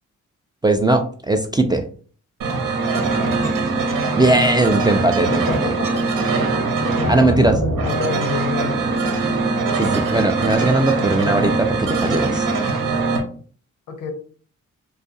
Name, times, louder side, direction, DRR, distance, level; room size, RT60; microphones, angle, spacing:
voice 1, 0.6-1.8 4.1-5.7 7.1-7.6 9.8-12.5, right 2 dB, 15° right, 5 dB, 0.3 m, -19 dB
voice 2, 2.4-2.9 3.9-4.9 5.3-8.9 13.9-14.1, left 5 dB, 75° left, 5 dB, 0.7 m, -30 dB
sound 1, 2.4-13.2, right 3 dB, 80° right, 0.6 m, -22 dB
2.4 x 2.3 x 2.6 m, 0.43 s
cardioid pair, 50°, 32 cm